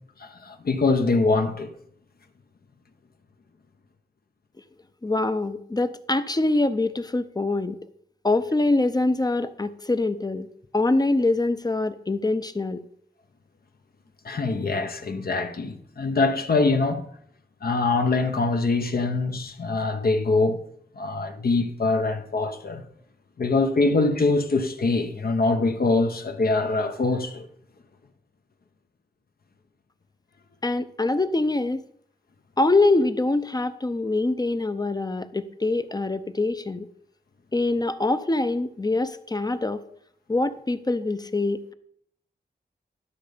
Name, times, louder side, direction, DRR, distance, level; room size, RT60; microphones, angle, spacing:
voice 1, 0.2-1.7 14.2-17.1 17.6-20.6 21.0-22.8 23.4-27.5, left 3 dB, 60° left, 0.9 m, -23 dB
voice 2, 5.0-7.8 8.2-10.5 10.7-12.8 30.6-31.8 32.6-36.9 37.5-39.8 40.3-41.7, left 2 dB, 25° left, 0.6 m, -24 dB
11.5 x 6.5 x 5.1 m
wide cardioid pair, 90°, 17 cm